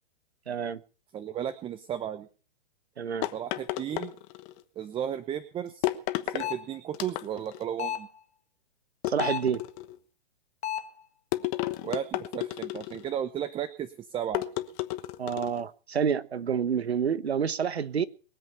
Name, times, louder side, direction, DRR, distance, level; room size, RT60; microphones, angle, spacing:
voice 1, 0.5-0.8 3.0-3.3 9.1-9.6 15.2-18.0, right 7 dB, 85° right, 16 dB, 1.2 m, -28 dB
voice 2, 1.1-2.3 3.3-4.1 4.8-5.9 6.2-8.1 11.8-14.4, right 9 dB, 15° right, 14 dB, 0.8 m, -34 dB
sound 1, 3.2-4.6 5.8-6.5 6.9-7.6 9.0-10.0 11.3-13.1 14.3-15.6, left 17 dB, 35° left, 1.2 m, -32 dB
sound 2, 6.4-6.7 7.8-8.2 9.2-9.6 10.6-11.0, left 10 dB, 85° left, 1.4 m, -33 dB
22.5 x 8.1 x 5.6 m, 0.38 s
hypercardioid pair, 125°, 31 cm